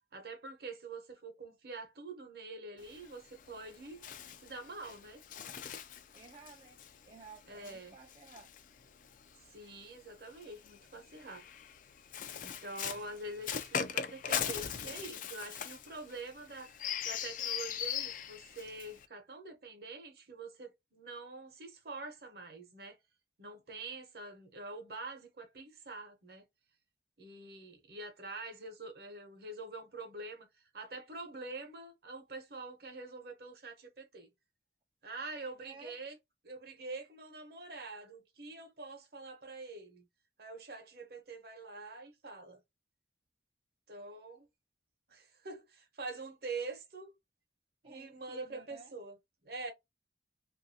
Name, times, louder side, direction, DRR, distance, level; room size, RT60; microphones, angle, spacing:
voice 1, 0.1-4.0 4.4-5.2 7.5-8.0 9.5-11.4 12.4-16.7 17.0-23.0 23.4-26.5 27.2-34.3 35.0-36.2 36.4-40.1 40.4-42.6 43.9-44.5 45.1-47.1 47.8-49.2 49.4-49.7, right 3 dB, 60° right, 0.9 m, -45 dB
Bird, 2.8-9.3 10.3-19.1, left 8 dB, 45° left, 0.4 m, -40 dB
voice 2, 6.1-8.5 35.6-36.1 47.8-48.9, right 4 dB, 30° right, 0.4 m, -55 dB
3.2 x 2.6 x 2.7 m
head